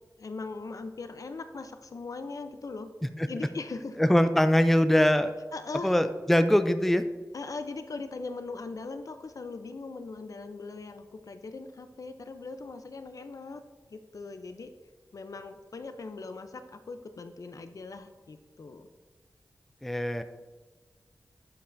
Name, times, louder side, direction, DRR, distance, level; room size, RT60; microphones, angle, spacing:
voice 1, 0.2-2.9 3.3-4.0 5.5-5.9 7.3-13.6 13.9-14.7 15.1-18.9, left 3 dB, 60° left, 9 dB, 0.5 m, -40 dB
voice 2, 4.0-5.3 5.8-7.0 19.8-20.2, left 1 dB, 5° left, 10 dB, 0.4 m, -22 dB
11.0 x 5.5 x 2.6 m, 1.3 s
wide cardioid pair, 70°, 7 cm